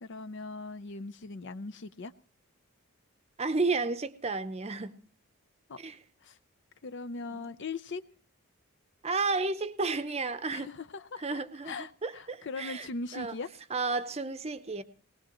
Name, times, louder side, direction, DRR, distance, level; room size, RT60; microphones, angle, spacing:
voice 1, 0.0-2.1 5.7-5.8 6.2-6.4 6.8-8.0 10.5-13.5, left 3 dB, 55° left, 13 dB, 0.6 m, -40 dB
voice 2, 3.4-4.9 5.8-6.0 7.3-7.5 9.0-10.7 11.2-12.9 13.1-13.3 13.7-14.8, right 3 dB, 30° right, 10 dB, 0.7 m, -32 dB
19.5 x 19.0 x 3.0 m, 0.42 s
head